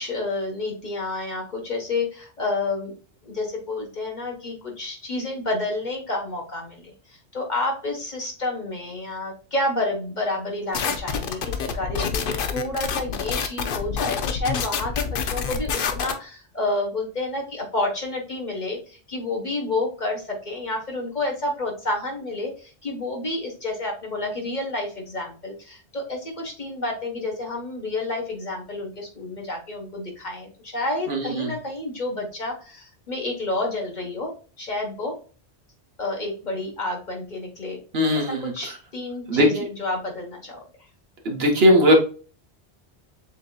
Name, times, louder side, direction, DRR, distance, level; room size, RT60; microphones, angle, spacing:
voice 1, 0.0-2.9 3.2-34.3 34.6-35.1 36.0-37.8 38.1-40.6, left 2 dB, 45° left, 0 dB, 1.3 m, -29 dB
sound 1, 10.7-16.1, left 6 dB, 60° left, 0.7 m, -27 dB
voice 2, 31.1-31.5 37.9-38.5 39.3-39.5 41.2-42.0, equal, 65° right, 2 dB, 1.3 m, -18 dB
7.3 x 2.8 x 2.2 m, 0.38 s
omnidirectional pair, 1.1 m